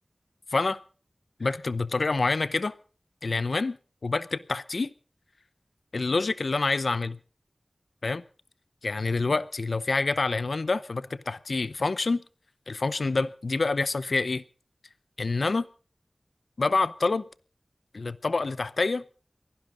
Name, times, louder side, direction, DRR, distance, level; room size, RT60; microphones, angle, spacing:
voice 1, 1.4-2.7 3.2-3.8 4.0-4.9 5.9-7.2 8.0-8.2 8.8-12.2 12.7-14.4 15.2-15.7 16.6-17.2 17.9-19.0, left 3 dB, 80° left, 0.7 m, -27 dB
29.0 x 11.5 x 3.8 m
wide cardioid pair, 50°, 0 cm